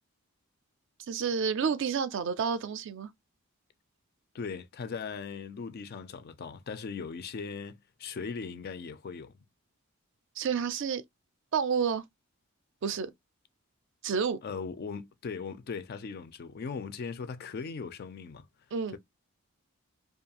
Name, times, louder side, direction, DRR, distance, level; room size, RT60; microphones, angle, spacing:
voice 1, 1.0-3.1 10.4-11.0 11.5-12.0 12.8-13.1 14.0-14.4 18.7-19.0, right 6 dB, 60° right, 0.4 m, -30 dB
voice 2, 4.3-9.3 14.4-18.5, left 5 dB, 45° left, 0.4 m, -39 dB
2.6 x 2.3 x 2.7 m
head